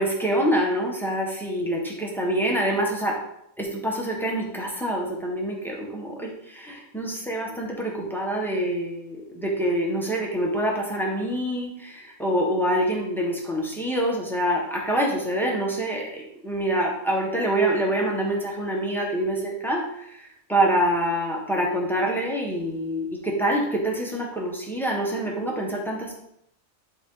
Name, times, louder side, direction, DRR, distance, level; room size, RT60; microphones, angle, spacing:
voice 1, 0.0-3.2 3.6-26.1, right 1 dB, ahead, -1 dB, 1.5 m, -26 dB
11.0 x 4.4 x 3.9 m, 0.74 s
omnidirectional pair, 1.4 m